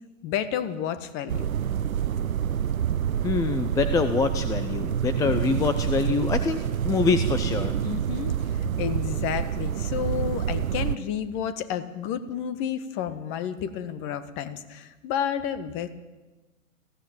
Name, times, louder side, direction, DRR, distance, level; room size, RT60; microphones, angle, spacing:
voice 1, 0.2-1.5 7.8-8.4 8.8-15.9, left 9 dB, 30° left, 13 dB, 1.6 m, -31 dB
sound 1, 1.3-11.0, right 9 dB, 75° right, 0.8 m, -27 dB
voice 2, 3.2-7.7, left 5 dB, 10° left, 9 dB, 0.6 m, -25 dB
20.5 x 16.0 x 9.1 m, 1.2 s
hypercardioid pair, 125°, 41 cm